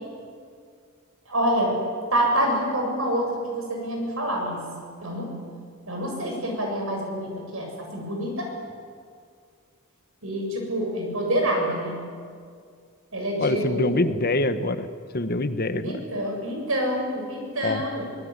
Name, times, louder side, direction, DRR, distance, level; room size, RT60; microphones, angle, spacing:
voice 1, 1.3-1.8 2.1-4.6 5.0-5.3 5.9-8.5 10.2-11.9 13.1-14.0 15.8-18.0, equal, 70° right, 1 dB, 7.6 m, -27 dB
voice 2, 13.4-14.9 15.1-16.0 17.6-17.8, left 2 dB, 45° left, 10 dB, 1.1 m, -25 dB
24.0 x 20.0 x 9.6 m, 2.2 s
head